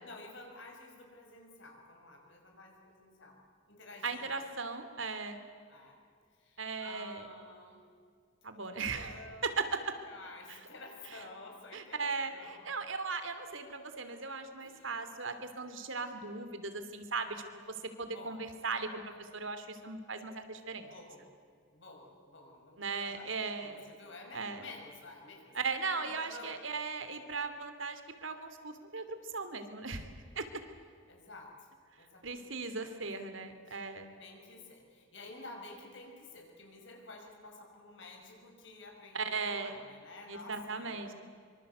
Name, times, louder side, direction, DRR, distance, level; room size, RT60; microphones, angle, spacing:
voice 1, 0.0-3.4 3.7-4.2 5.7-6.0 6.3-7.9 8.5-9.6 10.0-12.6 14.6-15.0 18.1-18.4 20.7-21.3 21.7-25.6 26.0-26.6 31.1-31.7 32.0-33.0 33.3-33.8 34.2-41.1, left 2 dB, 60° left, 1 dB, 5.8 m, -51 dB
voice 2, 4.0-5.4 6.6-7.3 8.4-10.0 10.5-10.6 11.7-20.9 22.8-23.8 24.3-24.7 25.5-30.1 30.3-30.5 32.2-34.1 39.1-39.7 40.3-41.1, right 4 dB, 70° right, 9 dB, 2.9 m, -38 dB
25.5 x 25.0 x 8.1 m, 2.1 s
head